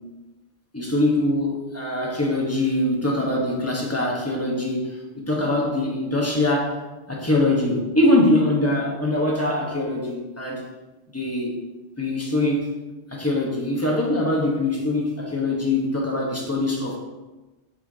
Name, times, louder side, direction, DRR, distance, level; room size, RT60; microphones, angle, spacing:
voice 1, 0.7-6.8 7.1-10.6 11.1-11.6 12.0-12.7 13.1-17.0, left 1 dB, 15° left, -2 dB, 1.2 m, -23 dB
7.9 x 5.8 x 2.9 m, 1.1 s
omnidirectional pair, 1.1 m